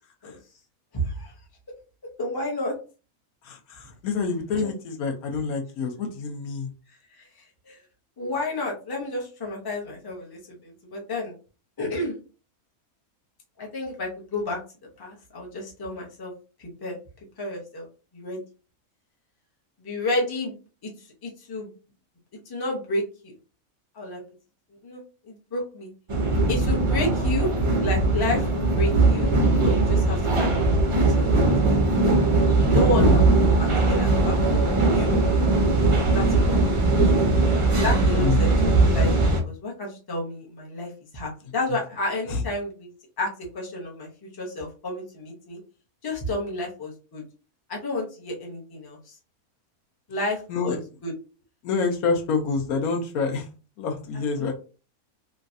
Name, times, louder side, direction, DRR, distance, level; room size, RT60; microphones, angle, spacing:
voice 1, 0.9-1.3 2.2-2.8 7.1-7.3 7.6-7.8 8.2-11.3 11.8-12.2 13.6-14.6 15.0-16.3 16.6-16.9 17.4-17.8 18.1-18.4 19.8-20.6 20.8-21.7 22.5-23.0 23.9-24.2 24.8-25.9 26.5-27.5 27.8-29.3 29.6-31.4 31.7-31.8 32.6-33.2 33.6-35.1 36.1-37.2 37.7-38.6 38.9-42.9 43.2-44.1 44.4-45.6 46.0-47.2 47.7-49.2 50.1-51.1 54.4-54.5, left 1 dB, 20° left, -2 dB, 0.6 m, -31 dB
voice 2, 3.4-6.7 33.0-33.2 38.1-38.4 42.3-42.4 50.5-50.8 51.6-53.5 53.8-54.5, left 4 dB, 75° left, 3 dB, 1.1 m, -27 dB
sound 1, 26.1-39.4, right 2 dB, 55° right, 0.3 m, -20 dB
3.1 x 2.5 x 2.6 m, 0.34 s
omnidirectional pair, 1.5 m